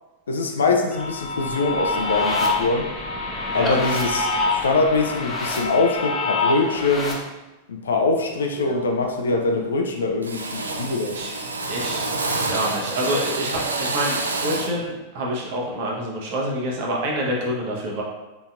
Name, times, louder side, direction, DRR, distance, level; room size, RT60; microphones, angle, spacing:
voice 1, 0.3-2.9 3.5-7.2 7.7-11.2, left 3 dB, 70° left, 3 dB, 0.5 m, -23 dB
sound 1, 0.9-7.1, left 2 dB, 20° left, 0.9 m, -26 dB
Drill, 7.9-8.1 8.5-9.1 9.3-9.9 10.2-14.8, right 3 dB, 75° right, 0.4 m, -28 dB
voice 2, 11.7-12.0 12.5-18.0, equal, 50° right, -2 dB, 1.0 m, -27 dB
4.0 x 4.0 x 2.3 m, 1.1 s
figure-of-eight pair, 90°, 0 cm